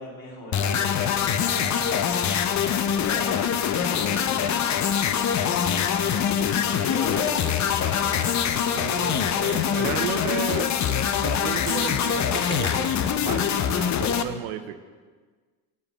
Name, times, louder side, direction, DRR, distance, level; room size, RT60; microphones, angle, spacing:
voice 1, 0.0-2.1 2.8-3.4 3.7-4.7 6.8-7.4 7.8-8.3, left 2 dB, 60° left, -3 dB, 2.9 m, -37 dB
sound 1, 0.5-14.2, left 8 dB, 45° left, 0.6 m, -24 dB
voice 2, 8.7-10.8 11.2-14.8, right 11 dB, 85° right, 10 dB, 0.7 m, -33 dB
sound 2, 9.1-14.3, left 3 dB, 25° left, 2.2 m, -44 dB
7.9 x 4.9 x 6.6 m, 1.5 s
supercardioid pair, 75°, 40 cm